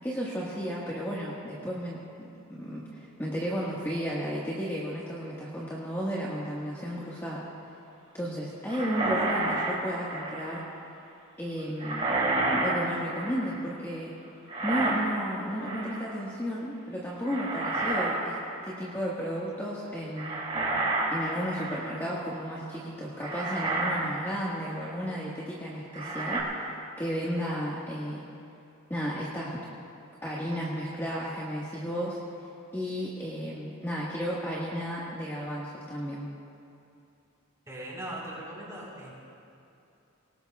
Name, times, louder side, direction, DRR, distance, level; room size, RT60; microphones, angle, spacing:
voice 1, 0.0-7.4 8.1-10.6 11.4-12.1 12.6-14.1 14.6-18.4 18.7-20.4 21.1-26.7 27.0-28.2 28.9-29.6 30.2-32.2 32.7-36.3, equal, 10° left, -7 dB, 1.5 m, -33 dB
sound 1, 8.7-10.6 11.8-13.6 14.5-15.3 15.6-16.1 17.2-18.1 18.5-18.7 20.2-22.0 22.7-22.8 23.2-24.1 24.5-24.7 25.9-26.4, right 2 dB, 30° right, 2.7 m, -30 dB
voice 2, 37.7-39.1, right 1 dB, 15° right, -6 dB, 4.0 m, -39 dB
26.0 x 18.5 x 2.4 m, 2.7 s
head